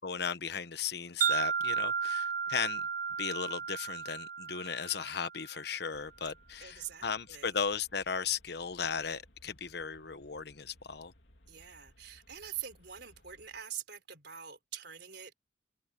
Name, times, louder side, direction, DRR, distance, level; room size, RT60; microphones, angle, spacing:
voice 1, 0.0-2.8 3.2-11.1, left 6 dB, 65° left, 1.1 m, -36 dB
Wind chime, 1.2-5.5, right 6 dB, 50° right, 0.6 m, -33 dB
sound 1, 5.9-13.6, equal, 85° left, 3.3 m, -63 dB
voice 2, 6.6-7.5 11.5-15.3, right 9 dB, 65° right, 4.3 m, -44 dB
head